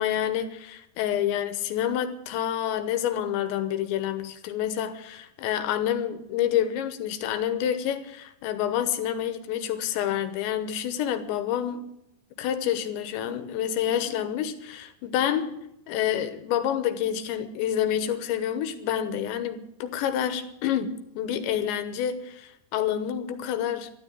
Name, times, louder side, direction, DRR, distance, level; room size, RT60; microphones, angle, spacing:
voice 1, 0.0-11.9 12.4-15.6 15.9-23.9, left 10 dB, 85° left, 3.1 m, -28 dB
13.0 x 9.3 x 9.3 m
omnidirectional pair, 5.3 m